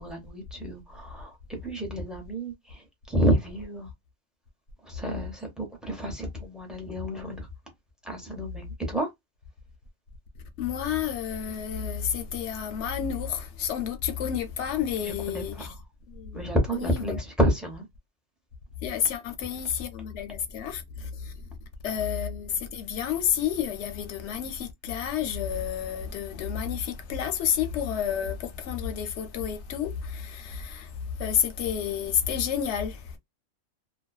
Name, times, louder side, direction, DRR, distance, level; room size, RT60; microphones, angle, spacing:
voice 1, 0.0-3.9 4.8-7.5 8.0-9.1 15.0-15.7 16.3-17.9, equal, ahead, 0.5 m, -29 dB
voice 2, 10.6-15.7 16.8-17.0 18.8-20.8 21.8-30.9 31.2-33.0, left 8 dB, 65° left, 0.8 m, -30 dB
2.5 x 2.2 x 2.3 m
omnidirectional pair, 1.4 m